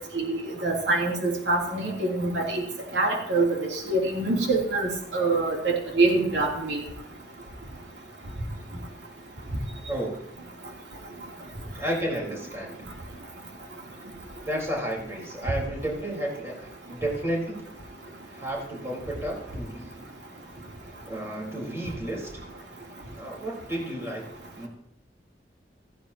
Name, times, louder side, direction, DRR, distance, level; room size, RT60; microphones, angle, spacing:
voice 1, 0.0-2.6 2.9-6.8, right 2 dB, 85° right, -1 dB, 3.2 m, -25 dB
voice 2, 9.9-10.2 11.7-12.8 14.4-17.7 18.3-20.0 21.0-22.4 23.1-24.2 24.6-24.7, right 1 dB, 15° right, -3 dB, 4.3 m, -32 dB
16.0 x 15.0 x 2.9 m, 0.72 s
head